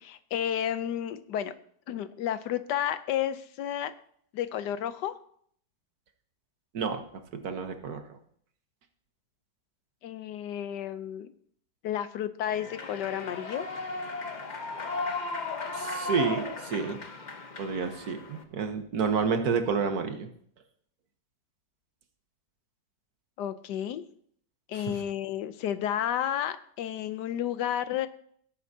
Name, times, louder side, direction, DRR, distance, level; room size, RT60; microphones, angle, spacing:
voice 1, 0.0-1.6 1.9-4.0 4.3-5.1 10.0-11.3 11.8-13.7 23.4-24.1 24.7-28.1, left 10 dB, 85° left, 12 dB, 1.3 m, -31 dB
voice 2, 7.4-8.0 15.7-17.0 17.6-20.3 24.7-24.9, right 5 dB, 65° right, 7 dB, 1.5 m, -29 dB
Human voice / Clapping / Cheering, 12.4-18.4, left 3 dB, 35° left, 0.8 m, -36 dB
17.0 x 8.8 x 2.7 m, 0.62 s
omnidirectional pair, 1.8 m